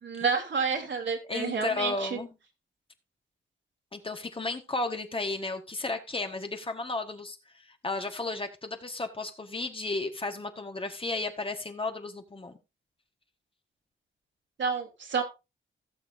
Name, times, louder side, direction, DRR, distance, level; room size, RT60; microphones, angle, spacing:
voice 1, 0.0-2.2 14.6-15.2, right 5 dB, 65° right, 2.6 m, -29 dB
voice 2, 1.3-2.3 3.9-12.6, left 3 dB, 25° left, 1.4 m, -34 dB
17.0 x 6.8 x 2.6 m
cardioid pair, 90°, 20 cm